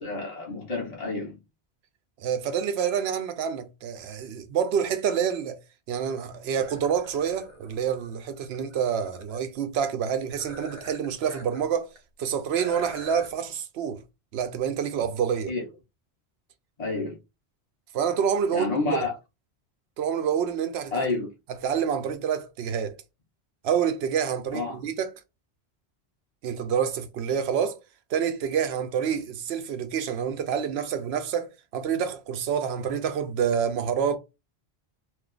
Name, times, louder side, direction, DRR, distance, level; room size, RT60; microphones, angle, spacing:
voice 1, 0.0-1.4 15.5-15.6 16.8-17.2 18.5-19.1 20.9-21.3 24.5-24.8, left 3 dB, 40° left, 0.8 m, -29 dB
voice 2, 2.2-5.6 5.9-11.9 12.2-14.0 14.3-15.5 17.9-19.0 20.0-21.2 21.5-23.0 23.6-25.1 26.4-27.8 28.1-34.2, right 7 dB, 80° right, 0.8 m, -27 dB
sound 1, 6.6-9.4 10.3-11.7 12.0-12.1 12.6-13.3, equal, 45° right, 0.9 m, -44 dB
2.5 x 2.3 x 3.7 m
omnidirectional pair, 1.1 m